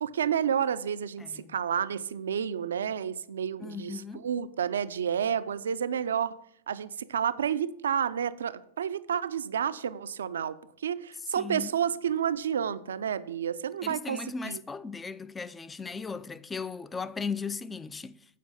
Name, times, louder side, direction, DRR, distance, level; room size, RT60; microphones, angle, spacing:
voice 1, 0.0-6.4 6.7-14.6, right 8 dB, 85° right, 0.4 m, -30 dB
voice 2, 3.6-4.3 11.4-11.7 13.8-18.4, left 5 dB, 15° left, 0.4 m, -37 dB
8.3 x 4.6 x 6.4 m
hypercardioid pair, 110°, 0 cm